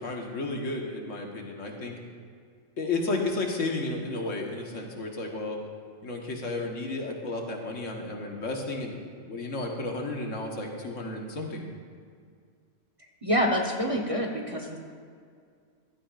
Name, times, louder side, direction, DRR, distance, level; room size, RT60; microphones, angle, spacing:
voice 1, 0.0-2.0 2.8-5.6 6.0-11.6, left 2 dB, 80° left, 1 dB, 1.7 m, -32 dB
voice 2, 13.2-14.8, equal, 30° right, 0 dB, 1.1 m, -26 dB
15.0 x 13.5 x 2.5 m, 2.2 s
omnidirectional pair, 1.3 m